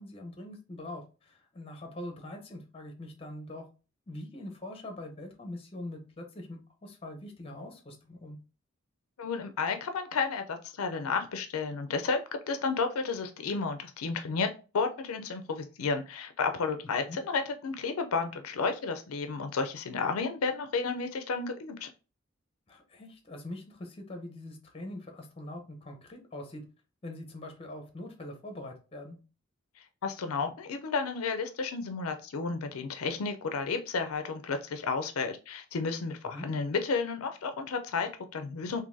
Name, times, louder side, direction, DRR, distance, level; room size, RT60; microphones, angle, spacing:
voice 1, 0.0-3.6 4.1-8.4 17.1-17.2 22.7-26.6 27.0-29.2 36.3-36.5, left 1 dB, 25° left, 4 dB, 0.7 m, -43 dB
voice 2, 9.2-12.2 12.5-21.9 29.8-38.8, left 4 dB, 85° left, 8 dB, 0.5 m, -32 dB
3.8 x 2.6 x 2.5 m, 0.33 s
head